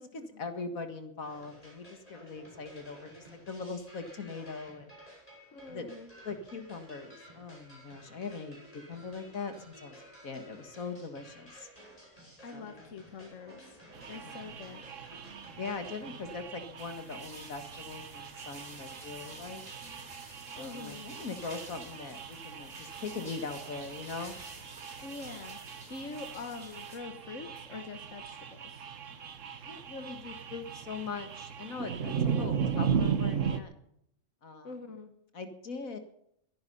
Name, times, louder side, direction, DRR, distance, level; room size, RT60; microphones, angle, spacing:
voice 1, 0.0-4.9 5.7-5.9 6.2-10.0 10.2-11.7 12.5-12.7 14.2-14.5 15.6-19.6 20.6-24.4 29.7-33.7 34.4-34.8 35.3-36.0, left 4 dB, 80° left, 8 dB, 2.2 m, -41 dB
sound 1, 1.2-16.4, equal, 25° left, 6.9 m, -54 dB
voice 2, 5.5-6.1 12.4-13.8 14.1-14.9 20.6-21.1 25.0-25.6 25.9-28.9 34.6-35.1, left 4 dB, 65° left, 7 dB, 1.7 m, -44 dB
sound 2, 13.9-33.6, right 7 dB, 65° right, 1.5 m, -37 dB
sound 3, 16.8-27.0, right 1 dB, 30° right, 3.3 m, -51 dB
21.5 x 10.5 x 5.5 m, 0.72 s
omnidirectional pair, 1.4 m